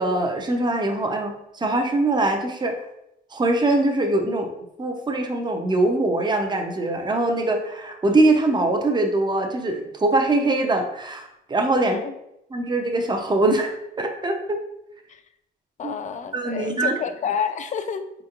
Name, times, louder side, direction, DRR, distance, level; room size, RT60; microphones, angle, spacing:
voice 1, 0.0-2.7 3.3-4.5 4.8-12.0 12.5-14.6 15.8-15.9 16.3-17.0, right 2 dB, 20° right, 4 dB, 0.6 m, -22 dB
voice 2, 11.8-12.1 15.1-15.2 15.8-18.1, left 7 dB, 40° left, 9 dB, 0.4 m, -29 dB
4.2 x 2.9 x 2.4 m, 0.83 s
cardioid pair, 90°, 20 cm